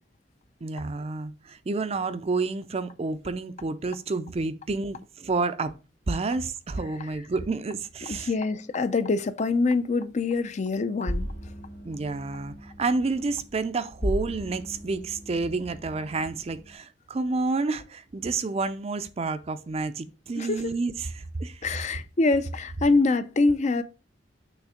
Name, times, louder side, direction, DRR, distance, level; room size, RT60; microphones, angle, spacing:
voice 1, 0.6-5.7 6.1-8.3 11.8-21.6, right 3 dB, 35° right, 0.4 m, -29 dB
voice 2, 8.0-11.3 20.4-20.7 21.6-23.8, left 3 dB, 40° left, 0.5 m, -25 dB
sound 1, 11.1-16.7, equal, 80° left, 2.1 m, -36 dB
6.2 x 3.3 x 4.9 m
head